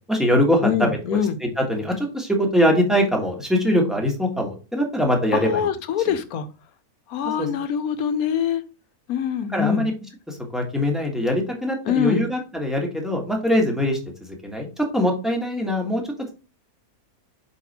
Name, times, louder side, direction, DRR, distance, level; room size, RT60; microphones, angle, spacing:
voice 1, 0.1-1.2 1.6-5.7 6.0-6.2 7.4-7.5 9.5-9.9 10.3-16.3, equal, ahead, 0 dB, 1.3 m, -22 dB
voice 2, 0.6-1.4 5.3-6.4 7.1-8.6 9.1-9.9 11.9-12.2, left 8 dB, 80° left, 11 dB, 1.2 m, -24 dB
5.6 x 4.2 x 4.1 m, 0.32 s
omnidirectional pair, 1.5 m